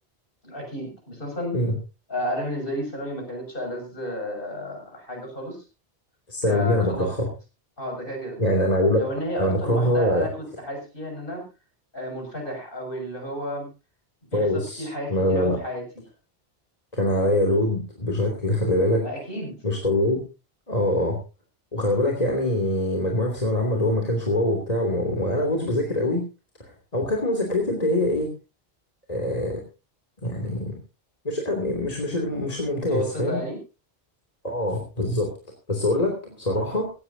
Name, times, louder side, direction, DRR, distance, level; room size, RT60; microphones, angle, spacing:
voice 1, 0.4-1.6 2.1-5.6 6.5-7.1 7.8-8.4 9.0-11.4 11.9-13.7 14.3-15.8 19.0-19.6 32.7-33.6 36.3-36.4, equal, 60° left, 2 dB, 7.1 m, -32 dB
voice 2, 6.3-7.3 8.4-9.0 9.4-10.3 14.3-15.6 16.9-19.0 19.6-20.2 20.7-21.2 21.7-26.3 26.9-28.3 29.1-29.6 30.2-30.8 31.2-33.4 34.4-35.3 35.7-36.9, left 1 dB, 40° left, 1 dB, 3.1 m, -24 dB
17.5 x 17.0 x 2.8 m, 0.30 s
omnidirectional pair, 1.1 m